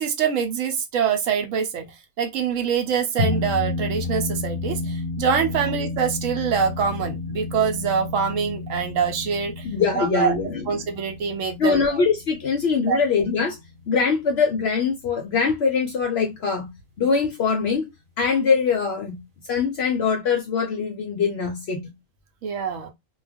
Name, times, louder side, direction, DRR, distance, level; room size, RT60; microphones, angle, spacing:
voice 1, 0.0-1.9 2.2-9.7 10.0-10.3 10.7-11.8 12.9-13.0 22.4-22.9, right 7 dB, 70° right, 0.9 m, -24 dB
sound 1, 3.2-13.9, left 3 dB, 40° right, 1.0 m, -31 dB
voice 2, 9.6-10.8 11.6-13.6 13.9-16.7 17.0-17.9 18.2-19.2 19.4-21.9, left 5 dB, 65° left, 0.6 m, -23 dB
2.3 x 2.2 x 3.4 m
omnidirectional pair, 1.5 m